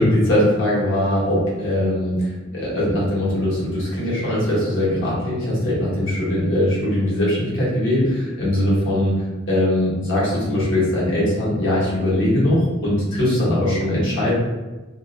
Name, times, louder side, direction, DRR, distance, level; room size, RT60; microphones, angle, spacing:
voice 1, 0.0-14.3, left 1 dB, 75° left, -8 dB, 1.1 m, -21 dB
2.4 x 2.0 x 2.5 m, 1.2 s
head